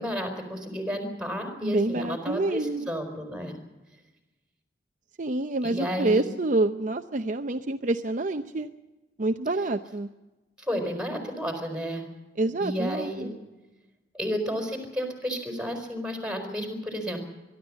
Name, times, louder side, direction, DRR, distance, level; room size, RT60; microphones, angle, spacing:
voice 1, 0.0-3.6 5.6-6.3 10.6-12.0 12.6-13.3 14.1-17.2, equal, 5° right, 5 dB, 4.5 m, -32 dB
voice 2, 1.6-2.9 5.2-8.7 9.2-10.1 12.4-13.3, right 2 dB, 45° right, 7 dB, 0.7 m, -27 dB
22.5 x 13.0 x 9.7 m, 1.1 s
head